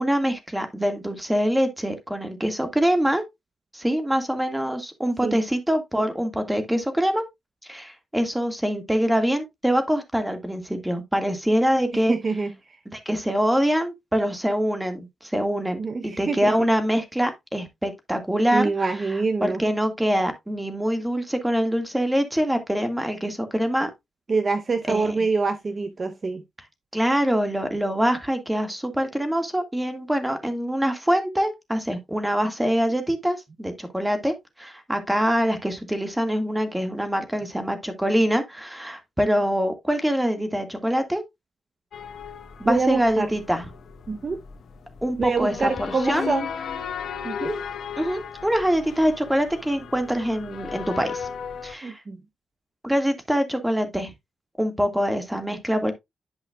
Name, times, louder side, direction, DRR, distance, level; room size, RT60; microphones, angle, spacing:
voice 1, 0.0-3.2 3.7-7.2 7.7-12.2 12.9-18.7 19.4-23.9 24.9-25.1 26.9-41.2 42.6-43.7 45.0-46.3 48.0-51.3 51.6-52.0 52.8-54.1 54.6-55.9, equal, 10° right, 1.9 m, -24 dB
voice 2, 11.9-12.5 15.8-16.5 18.5-19.6 24.3-26.4 42.6-43.3 44.1-44.4 45.2-46.5 47.2-47.6 51.8-52.2, right 4 dB, 40° right, 0.8 m, -25 dB
sound 1, 41.9-51.7, left 7 dB, 75° left, 1.2 m, -36 dB
11.0 x 5.5 x 2.3 m
cardioid pair, 85°, 0 cm